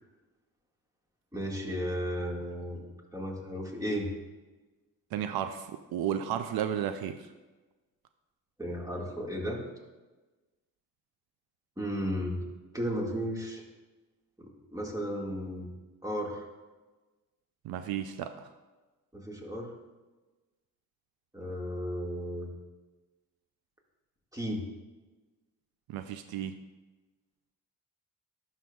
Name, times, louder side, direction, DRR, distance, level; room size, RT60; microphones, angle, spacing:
voice 1, 1.3-2.8 3.1-4.1 8.6-9.6 11.8-12.4 12.7-13.6 14.4-15.7 16.0-16.5 19.1-19.7 21.3-22.5 24.3-24.6, equal, 10° right, -1 dB, 1.8 m, -34 dB
voice 2, 5.1-7.3 17.6-18.5 25.9-26.5, right 9 dB, 80° right, 9 dB, 0.5 m, -33 dB
11.5 x 5.6 x 2.3 m, 1.2 s
supercardioid pair, 55°, 37 cm